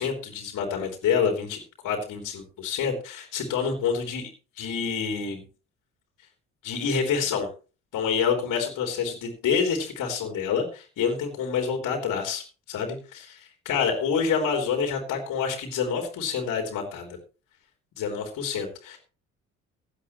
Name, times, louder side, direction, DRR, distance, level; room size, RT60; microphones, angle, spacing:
voice 1, 0.0-4.3 4.6-5.4 6.6-7.5 7.9-17.2 18.0-19.0, left 6 dB, 55° left, 3 dB, 3.5 m, -27 dB
16.5 x 12.0 x 3.2 m, 0.35 s
figure-of-eight pair, 50°, 37 cm